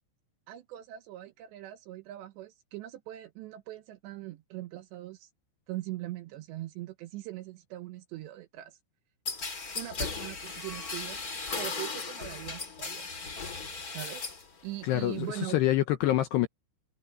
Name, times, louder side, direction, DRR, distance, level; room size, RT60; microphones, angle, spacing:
voice 1, 0.5-5.3 5.7-8.8 9.8-11.2 11.6-13.1 13.9-14.3 14.6-15.6, right 15 dB, 75° right, 2.8 m, -41 dB
sound 1, 9.2-14.5 14.8-15.4, left 4 dB, 35° left, 1.4 m, -37 dB
voice 2, 14.8-16.5, left 14 dB, 75° left, 2.6 m, -26 dB
omnidirectional pair, 5.8 m